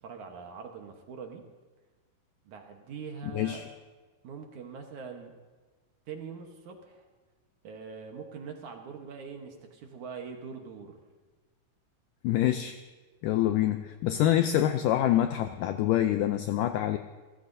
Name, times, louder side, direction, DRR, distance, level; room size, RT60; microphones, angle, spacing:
voice 1, 0.0-1.4 2.5-3.7 4.2-5.3 6.1-7.1 7.6-11.0, right 6 dB, 65° right, 3 dB, 2.2 m, -43 dB
voice 2, 3.3-3.6 12.2-12.8 13.2-17.0, left 12 dB, 85° left, 8 dB, 1.9 m, -26 dB
28.5 x 15.5 x 2.7 m, 1.3 s
omnidirectional pair, 4.4 m